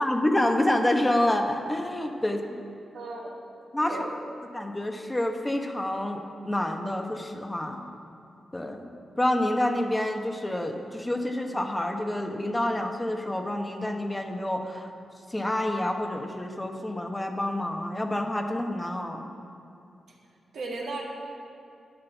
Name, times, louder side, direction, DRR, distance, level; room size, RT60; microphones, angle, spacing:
voice 1, 0.0-2.6 3.7-4.1 4.5-7.9 8.5-8.9 9.2-14.9 15.3-19.3, left 1 dB, 20° left, 3 dB, 1.1 m, -28 dB
voice 2, 2.9-3.3 3.9-4.1 20.5-21.0, right 3 dB, 75° right, -3 dB, 2.0 m, -36 dB
11.5 x 5.6 x 7.1 m, 2.6 s
supercardioid pair, 50°, 0 cm